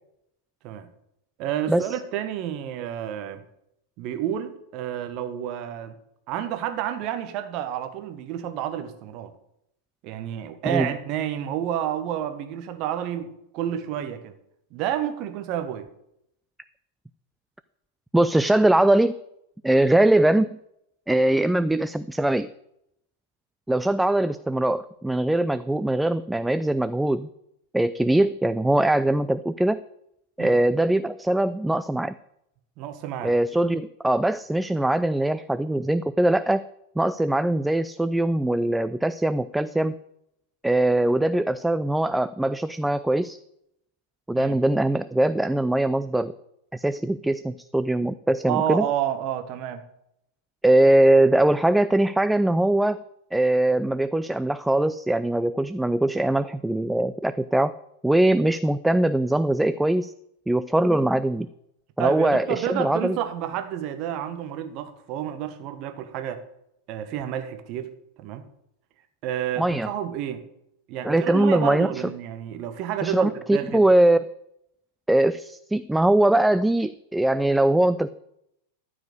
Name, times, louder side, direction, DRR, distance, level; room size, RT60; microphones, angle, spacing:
voice 1, 1.4-3.4 4.0-6.0 6.3-9.3 10.0-14.3 14.7-15.9 30.4-30.6 32.8-33.3 44.3-44.5 48.5-49.8 62.0-66.4 66.9-68.5 69.2-70.4 70.9-73.8, right 10 dB, 40° right, 8 dB, 1.3 m, -30 dB
voice 2, 18.1-19.1 19.6-20.6 21.1-22.5 23.7-27.3 27.7-29.8 30.4-32.1 33.2-36.6 37.0-40.0 40.6-43.4 44.3-46.3 46.7-48.9 50.6-53.0 53.3-57.7 58.0-60.1 60.5-61.5 62.0-63.2 69.6-69.9 71.0-71.9 73.0-74.2 75.1-78.1, right 1 dB, 5° right, 14 dB, 0.3 m, -21 dB
13.5 x 5.0 x 8.0 m, 0.79 s
figure-of-eight pair, 90°, 0 cm